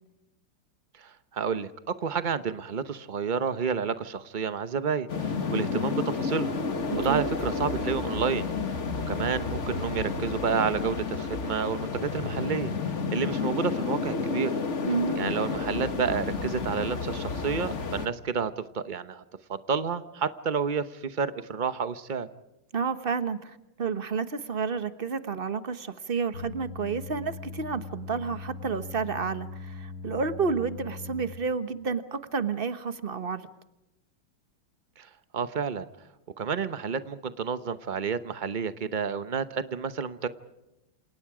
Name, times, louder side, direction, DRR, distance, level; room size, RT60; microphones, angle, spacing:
voice 1, 1.0-1.7 2.0-6.6 7.0-8.5 9.1-12.7 13.1-14.6 15.2-19.2 19.5-22.3 35.0-35.9 36.4-40.3, right 6 dB, 75° right, 12 dB, 0.4 m, -30 dB
sound 1, 5.1-18.1, left 4 dB, 35° left, 1.6 m, -31 dB
voice 2, 6.9-7.2 14.8-15.2 22.7-33.5, right 5 dB, 35° right, 11 dB, 1.0 m, -30 dB
sound 2, 26.3-31.2, left 4 dB, 65° left, 7.3 m, -40 dB
28.0 x 28.0 x 4.9 m, 0.93 s
omnidirectional pair, 2.3 m